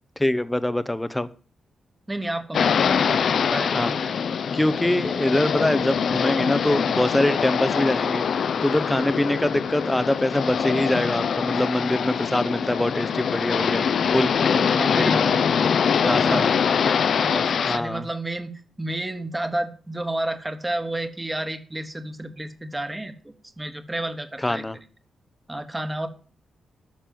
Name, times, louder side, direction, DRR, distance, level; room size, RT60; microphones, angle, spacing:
voice 1, 0.2-1.3 3.7-4.1 4.5-13.8 14.1-14.4 15.0-15.3 16.1-16.5 17.7-18.1 24.4-24.8, left 1 dB, 10° left, 14 dB, 0.7 m, -24 dB
voice 2, 2.1-4.1 14.4-18.5 18.8-24.6 25.5-26.1, right 1 dB, 10° right, 9 dB, 1.3 m, -31 dB
sound 1, 2.5-17.8, left 7 dB, 55° left, 0.7 m, -23 dB
11.5 x 6.7 x 7.5 m, 0.39 s
wide cardioid pair, 165°, 0 cm